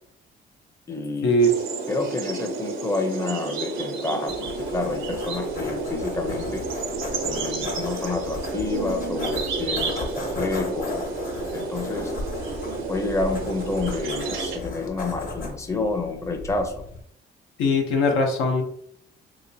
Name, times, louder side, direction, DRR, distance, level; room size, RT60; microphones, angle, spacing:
voice 1, 0.9-1.3 1.9-6.6 7.2-10.9 11.5-12.1 12.9-16.7, left 3 dB, 15° left, 4 dB, 0.6 m, -29 dB
sound 1, 1.4-14.6, right 4 dB, 85° right, 0.7 m, -31 dB
sound 2, 4.3-17.0, left 3 dB, 45° left, 1.1 m, -35 dB
voice 2, 17.6-18.6, left 1 dB, 85° left, 2 dB, 0.9 m, -20 dB
3.4 x 2.8 x 2.7 m, 0.65 s
cardioid pair, 90°, 20 cm